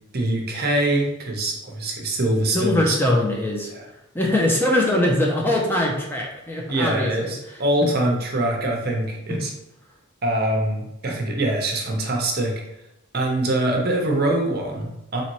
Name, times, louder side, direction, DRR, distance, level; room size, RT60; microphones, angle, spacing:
voice 1, 0.1-3.0 3.7-3.8 6.7-9.5 10.2-12.5 13.1-15.2, right 1 dB, 45° right, 1 dB, 0.7 m, -23 dB
voice 2, 2.5-3.7 4.1-7.9 9.3-9.5, left 1 dB, 10° left, -1 dB, 0.5 m, -22 dB
4.2 x 2.9 x 3.0 m, 0.88 s
head